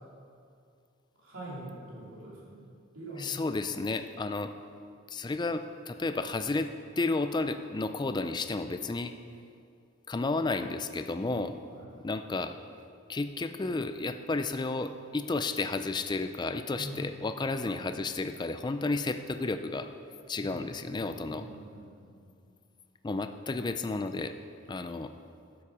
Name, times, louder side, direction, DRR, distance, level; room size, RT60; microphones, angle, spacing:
voice 1, 1.2-2.6 2.9-3.3 11.7-11.9 16.7-17.0 20.4-22.3 23.5-23.6, right 1 dB, 75° right, -5 dB, 3.0 m, -45 dB
voice 2, 3.2-4.5 5.1-6.7 7.0-9.1 10.1-11.6 12.0-12.5 13.1-19.9 20.3-21.5 23.0-24.3 24.7-25.1, left 3 dB, 20° left, 9 dB, 0.4 m, -32 dB
12.0 x 7.2 x 4.9 m, 2.4 s
head